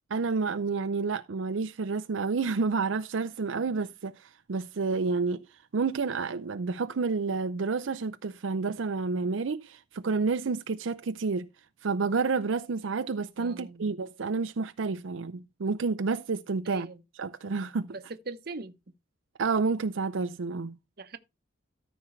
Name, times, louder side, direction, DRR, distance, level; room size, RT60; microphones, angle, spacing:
voice 1, 0.1-5.4 5.7-11.5 11.8-16.9 17.2-17.9 19.4-20.8, right 4 dB, 85° right, 0.5 m, -29 dB
voice 2, 13.4-13.9 16.6-17.0 17.9-18.8 21.0-21.2, right 3 dB, 55° right, 0.9 m, -41 dB
13.5 x 6.1 x 3.2 m
head